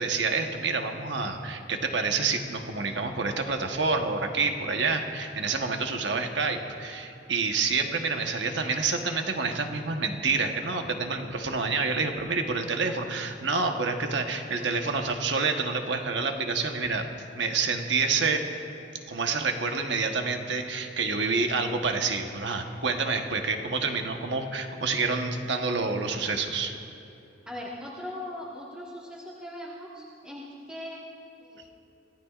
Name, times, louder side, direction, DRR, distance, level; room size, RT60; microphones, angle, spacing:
voice 1, 0.0-17.1 17.4-18.4 19.1-26.7, right 4 dB, 75° right, 4 dB, 1.2 m, -28 dB
voice 2, 27.5-31.0 31.4-31.6, left 1 dB, 5° right, -7 dB, 1.6 m, -40 dB
25.5 x 15.5 x 2.5 m, 2.8 s
head